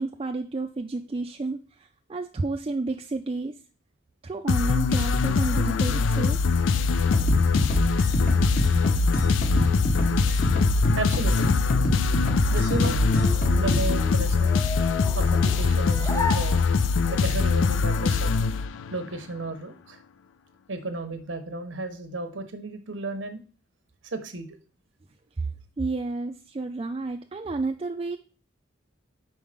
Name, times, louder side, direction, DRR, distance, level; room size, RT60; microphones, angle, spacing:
voice 1, 0.0-3.5 4.2-6.5 25.4-25.5 25.8-28.2, right 3 dB, 30° right, 3 dB, 0.4 m, -31 dB
sound 1, 4.5-19.1, left 5 dB, 85° left, 0.4 m, -23 dB
sound 2, 7.1-13.9, equal, 45° left, 1.1 m, -26 dB
voice 2, 11.0-11.6 12.5-13.1 13.5-14.6 15.1-16.6 17.0-18.3 18.9-20.0 20.7-23.4 24.1-24.6, right 2 dB, 85° right, 8 dB, 1.0 m, -33 dB
sound 3, 12.7-17.2, left 3 dB, 15° left, 0.6 m, -35 dB
5.5 x 4.6 x 5.0 m, 0.37 s
head